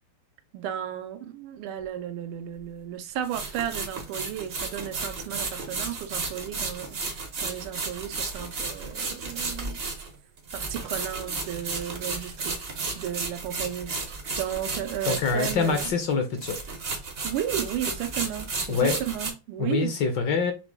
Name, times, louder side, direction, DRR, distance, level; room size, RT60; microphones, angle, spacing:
voice 1, 0.5-9.8 10.5-13.9 14.3-15.9 17.2-19.9, right 10 dB, 85° right, 1.5 m, -34 dB
sound 1, 1.8-1.9 3.2-16.1 16.4-19.3, right 4 dB, 50° right, 0.7 m, -33 dB
voice 2, 15.1-16.6 18.7-19.0 19.6-20.5, left 5 dB, 65° left, 1.3 m, -25 dB
6.0 x 2.2 x 3.3 m
omnidirectional pair, 2.3 m